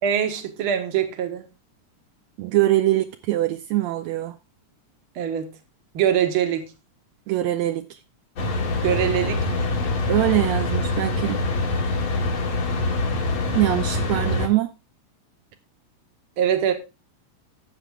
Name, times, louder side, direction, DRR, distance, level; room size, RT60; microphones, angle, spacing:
voice 1, 0.0-1.5 5.2-5.5 5.9-6.7 8.8-9.7 16.4-16.7, right 9 dB, 55° right, 2.0 m, -23 dB
voice 2, 2.4-4.3 7.3-7.8 10.1-11.4 13.5-14.7, right 15 dB, 80° right, 1.9 m, -23 dB
sound 1, 8.4-14.5, left 2 dB, 60° left, 3.0 m, -24 dB
12.5 x 7.6 x 3.5 m
omnidirectional pair, 3.3 m